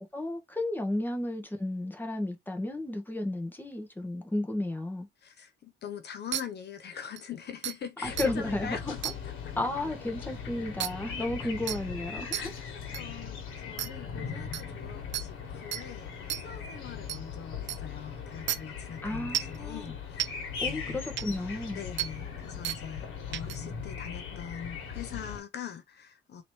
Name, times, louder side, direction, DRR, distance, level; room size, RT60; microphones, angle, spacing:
voice 1, 0.1-5.1 8.0-8.8 9.6-12.4 19.0-19.9 20.6-21.8, left 1 dB, 10° left, 1.3 m, -33 dB
voice 2, 5.2-9.5 11.4-11.5 12.3-21.1 21.3-26.4, left 8 dB, 55° left, 0.8 m, -43 dB
sound 1, 6.3-6.4 7.2-7.3 7.6-7.7 8.2-8.3 9.0-9.2 10.8-10.9 11.7-11.8 12.3-12.4 12.9-13.0 13.8-13.9 14.5-14.6 15.1-15.2 15.7-15.8 16.3-16.4 17.1-17.2 17.7-17.8 18.5-18.6 19.3-19.6 20.2-20.3 21.2-21.3 22.0-22.1 22.6-22.8 23.3-23.6, right 12 dB, 65° right, 0.6 m, -31 dB
sound 2, 8.0-25.4, left 6 dB, 85° left, 1.4 m, -39 dB
4.0 x 3.0 x 3.2 m
cardioid pair, 90°, 20 cm